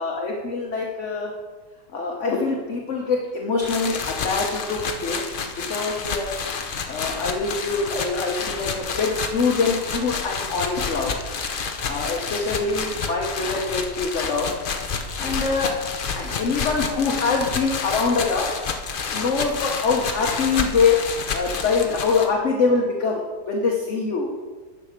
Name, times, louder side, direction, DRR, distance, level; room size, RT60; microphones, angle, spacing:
voice 1, 0.0-1.3 1.9-6.3 6.9-11.2 11.9-14.5 15.2-15.8 16.1-18.5 19.1-21.0 21.3-24.3, left 4 dB, 45° left, 0 dB, 1.2 m, -24 dB
sound 1, 3.6-22.3, left 5 dB, 75° left, 0.4 m, -29 dB
10.5 x 5.6 x 6.5 m, 1.4 s
omnidirectional pair, 2.0 m